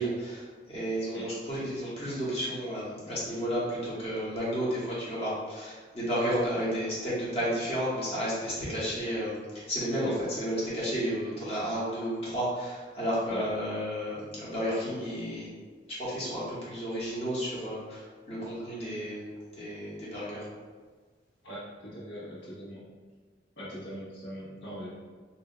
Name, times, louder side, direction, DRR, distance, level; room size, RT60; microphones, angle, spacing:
voice 1, 0.0-9.4 9.7-15.5 16.0-19.2 19.6-20.5, equal, 35° left, -8 dB, 1.4 m, -32 dB
voice 2, 21.4-22.8 23.6-24.9, equal, 85° left, -8 dB, 1.3 m, -41 dB
5.8 x 2.8 x 2.2 m, 1.5 s
head